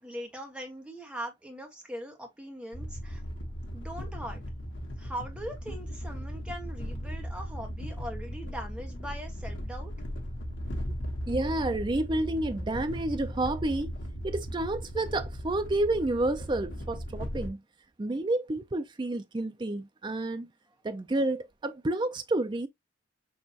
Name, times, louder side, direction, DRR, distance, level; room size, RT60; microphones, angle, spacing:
voice 1, 0.0-3.2 3.7-4.4 5.0-9.9, equal, 5° right, 1.2 m, -41 dB
sound 1, 2.7-17.5, equal, 80° left, 1.3 m, -37 dB
voice 2, 11.3-13.9 14.2-17.6 18.0-20.5 20.8-22.7, right 2 dB, 25° right, 0.4 m, -30 dB
6.3 x 3.0 x 2.8 m
head